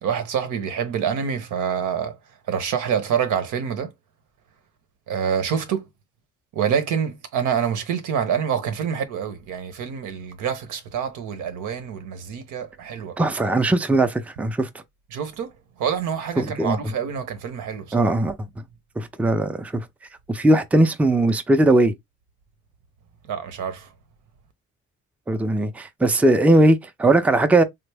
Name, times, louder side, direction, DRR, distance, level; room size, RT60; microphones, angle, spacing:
voice 1, 0.0-2.2 2.5-3.9 5.1-5.9 6.5-13.2 15.1-15.5 15.8-18.1 23.3-23.9, right 7 dB, 80° right, 0.8 m, -26 dB
voice 2, 13.2-14.7 16.4-16.8 17.9-18.3 19.0-19.9 20.3-21.9 25.3-27.6, right 2 dB, 5° right, 0.4 m, -19 dB
3.3 x 2.0 x 3.3 m
cardioid pair, 90°, 30 cm